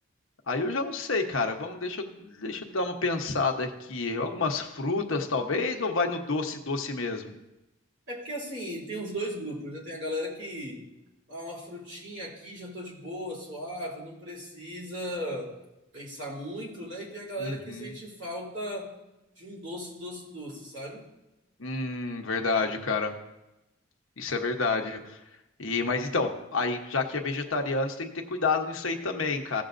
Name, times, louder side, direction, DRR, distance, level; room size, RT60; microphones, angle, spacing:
voice 1, 0.5-7.3 17.4-18.0 21.6-23.1 24.2-25.2 25.6-29.6, left 3 dB, 75° left, 4 dB, 1.0 m, -29 dB
voice 2, 8.1-10.8 11.3-15.6 15.9-18.9 19.4-21.0, equal, 60° right, -4 dB, 3.1 m, -37 dB
16.0 x 7.0 x 2.6 m, 0.95 s
head